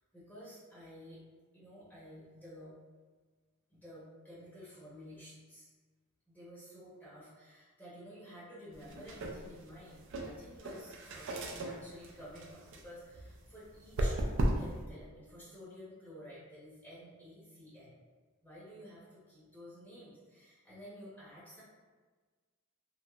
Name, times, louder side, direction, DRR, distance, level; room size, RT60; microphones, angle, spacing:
voice 1, 0.1-1.2 1.5-2.8 3.7-5.7 6.3-14.2 14.6-17.9 18.4-21.6, equal, 10° left, -10 dB, 0.7 m, -52 dB
sound 1, 8.7-14.8, right 1 dB, 60° right, 0.4 m, -37 dB
3.0 x 2.7 x 2.3 m, 1.4 s
head